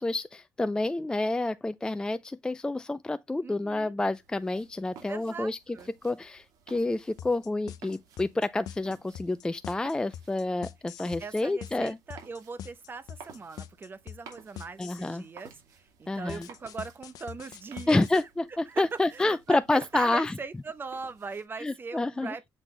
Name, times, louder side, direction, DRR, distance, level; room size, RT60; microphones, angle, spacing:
voice 1, 0.0-5.6 6.0-12.0 14.8-15.2 16.1-16.5 17.9-18.4 18.8-20.3 21.6-22.3, left 2 dB, 10° left, 0.4 m, -28 dB
voice 2, 3.4-3.9 5.1-5.9 11.2-18.2 18.5-18.8 19.1-22.5, right 4 dB, 35° right, 0.9 m, -40 dB
sound 1, 4.2-21.5, right 6 dB, 80° right, 2.4 m, -55 dB
sound 2, 7.2-15.2 16.3-18.2, left 10 dB, 75° left, 0.7 m, -43 dB
7.5 x 3.9 x 3.3 m
cardioid pair, 95°, 7 cm